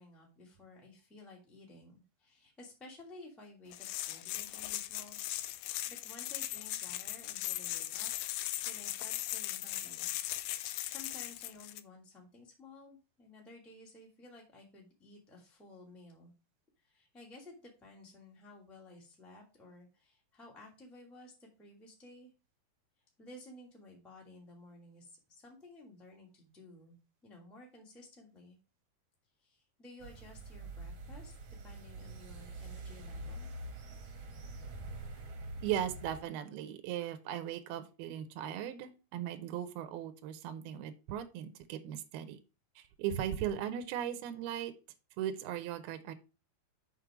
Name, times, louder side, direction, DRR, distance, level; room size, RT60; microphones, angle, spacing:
voice 1, 0.0-5.2 5.6-8.1 8.6-10.1 10.5-16.3 16.8-22.3 23.2-27.0 27.2-28.6 29.4-31.3 31.6-33.5, left 2 dB, ahead, -2 dB, 1.6 m, -54 dB
sound 1, 3.7-11.8, left 15 dB, 85° left, 2.6 m, -38 dB
sound 2, 30.0-36.2, right 2 dB, 55° right, 2.1 m, -45 dB
voice 2, 35.6-42.4 42.8-44.7 45.2-46.1, right 10 dB, 75° right, 9 dB, 2.6 m, -38 dB
6.4 x 6.1 x 5.0 m, 0.30 s
omnidirectional pair, 4.7 m